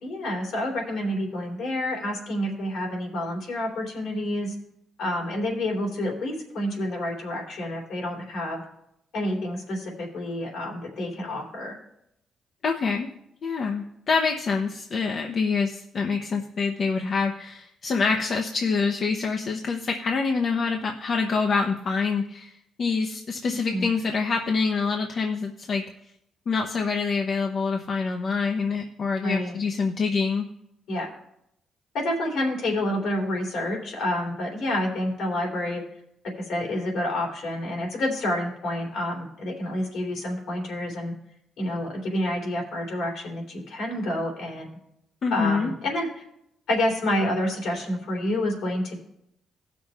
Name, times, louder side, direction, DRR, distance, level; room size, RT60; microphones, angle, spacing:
voice 1, 0.0-4.5 5.0-8.6 9.1-11.8 23.5-23.9 29.2-29.6 30.9-31.1 31.9-35.8 36.4-41.1 41.6-44.7 45.3-46.2 46.7-49.0, left 1 dB, 80° left, -1 dB, 3.2 m, -28 dB
voice 2, 12.6-13.1 13.4-25.8 26.5-30.5 45.2-45.7, left 4 dB, 55° left, 2 dB, 0.9 m, -26 dB
16.5 x 6.2 x 3.5 m, 0.78 s
supercardioid pair, 70°, 0 cm